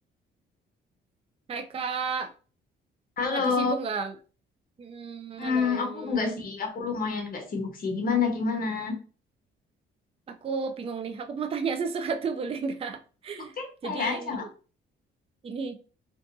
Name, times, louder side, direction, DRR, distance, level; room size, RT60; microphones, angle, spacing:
voice 1, 1.5-2.3 3.3-4.1 4.8-6.4 10.3-13.5 13.8-14.5 15.4-15.8, right 5 dB, 30° right, 6 dB, 0.4 m, -33 dB
voice 2, 3.2-3.7 5.4-9.0 13.6-14.5, left 5 dB, 45° left, 3 dB, 1.2 m, -28 dB
3.5 x 2.6 x 2.6 m, 0.36 s
cardioid pair, 90°, 20 cm